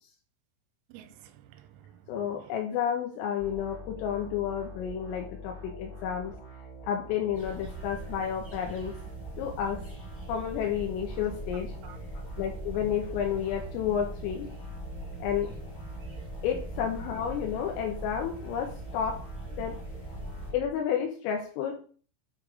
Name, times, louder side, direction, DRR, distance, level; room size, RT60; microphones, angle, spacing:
voice 1, 0.9-2.5 11.5-12.0, right 11 dB, 90° right, 3.3 m, -52 dB
voice 2, 2.1-6.3 6.9-8.9 9.4-9.8 10.3-11.9 12.4-14.5 15.2-15.5 16.4-19.2 19.6-19.7 20.5-21.7, left 8 dB, 85° left, 3.4 m, -31 dB
sound 1, 3.4-20.7, right 1 dB, 20° left, 1.2 m, -46 dB
sound 2, 7.3-20.5, right 1 dB, 10° right, 1.6 m, -41 dB
8.3 x 3.7 x 4.8 m
omnidirectional pair, 6.0 m